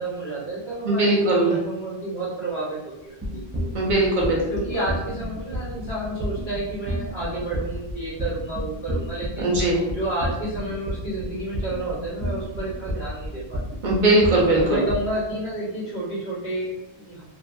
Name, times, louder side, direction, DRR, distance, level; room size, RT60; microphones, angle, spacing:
voice 1, 0.0-3.4 4.5-9.5 9.9-13.6 14.6-17.2, right 2 dB, 75° left, -8 dB, 1.5 m, -30 dB
voice 2, 0.8-1.5 3.7-4.4 9.4-9.8 13.8-14.8, right 2 dB, 55° right, -3 dB, 0.7 m, -19 dB
sound 1, 3.2-15.1, equal, 15° right, 0.4 m, -30 dB
2.6 x 2.3 x 2.5 m, 0.92 s
omnidirectional pair, 1.1 m